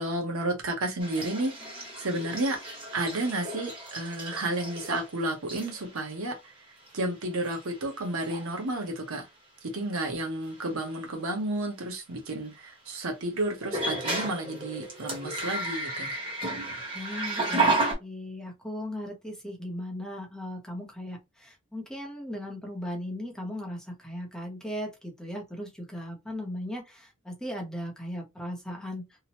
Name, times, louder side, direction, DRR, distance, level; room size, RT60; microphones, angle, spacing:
voice 1, 0.0-2.6 2.9-6.5 6.9-9.3 9.6-16.1, right 1 dB, 75° right, 0.8 m, -32 dB
sound 1, 1.0-5.1 5.5-5.9 6.9-7.0 7.5-7.9 8.2-8.5 10.5-10.6 13.6-17.9, right 2 dB, 25° right, 1.0 m, -32 dB
voice 2, 16.9-17.7 18.0-29.1, left 1 dB, 5° left, 0.7 m, -37 dB
2.8 x 2.0 x 2.8 m
head